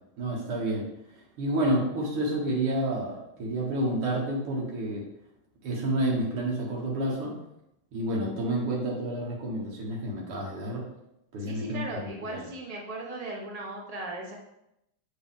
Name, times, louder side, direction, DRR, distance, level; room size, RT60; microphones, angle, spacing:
voice 1, 0.2-0.8 1.4-5.0 5.6-7.4 7.9-10.8 11.3-12.5, right 1 dB, 85° right, -3 dB, 2.1 m, -29 dB
voice 2, 11.4-14.4, right 2 dB, 60° right, -1 dB, 0.3 m, -37 dB
7.1 x 3.8 x 3.6 m, 0.83 s
omnidirectional pair, 2.4 m